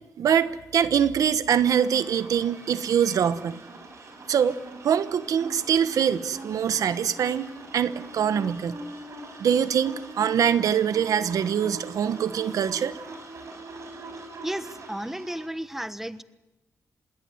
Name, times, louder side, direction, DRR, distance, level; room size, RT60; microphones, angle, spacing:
voice 1, 0.2-3.6 4.3-4.6 4.8-8.8 9.4-13.0, right 8 dB, 85° right, 12 dB, 1.1 m, -24 dB
sound 1, 1.5-15.5, right 2 dB, 60° right, 7.4 m, -42 dB
voice 2, 14.4-16.2, right 1 dB, 5° right, 12 dB, 1.3 m, -33 dB
26.5 x 21.0 x 7.9 m, 0.99 s
cardioid pair, 100°, 6 cm